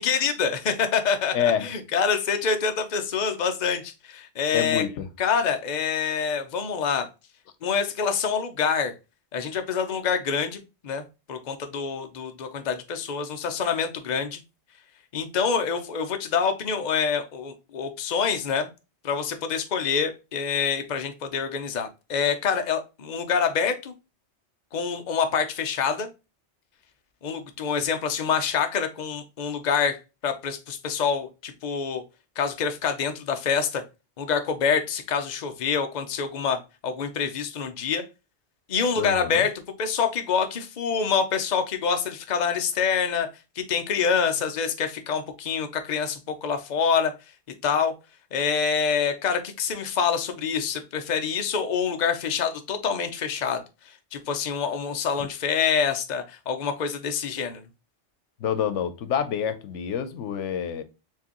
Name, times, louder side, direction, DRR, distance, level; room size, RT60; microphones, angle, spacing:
voice 1, 0.0-4.8 5.2-7.1 7.6-8.9 9.3-14.4 15.1-18.7 19.0-23.9 24.7-26.1 27.2-30.0 30.2-32.0 32.4-33.8 34.2-38.0 38.7-39.5 39.8-43.3 43.6-47.1 47.6-47.9 48.3-53.6 54.1-57.6, left 6 dB, 45° left, 0.7 m, -26 dB
voice 2, 1.3-1.7 4.5-5.1 39.0-39.4 58.4-60.8, left 8 dB, 90° left, 1.0 m, -27 dB
4.6 x 3.3 x 2.9 m
omnidirectional pair, 1.2 m